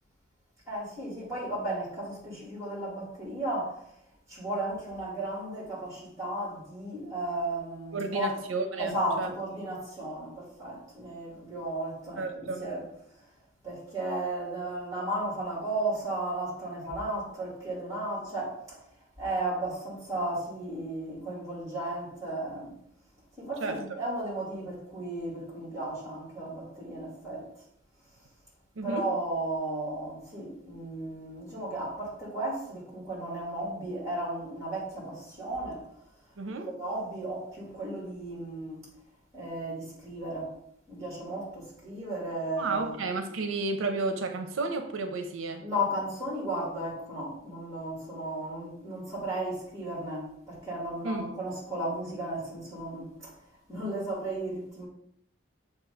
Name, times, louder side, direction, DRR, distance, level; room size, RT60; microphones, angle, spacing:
voice 1, 0.7-4.0 4.3-8.4 8.8-12.8 13.6-18.8 19.2-22.7 23.4-27.5 28.8-35.9 36.8-38.9 39.3-40.5 40.9-43.0 45.6-53.3 53.7-54.9, right 1 dB, 15° right, 2.3 m, -34 dB
voice 2, 7.9-9.3 12.2-12.6 23.6-23.8 28.8-29.1 36.4-36.7 42.6-45.6 51.0-51.3, right 3 dB, 85° right, 0.6 m, -32 dB
6.7 x 2.7 x 5.1 m
head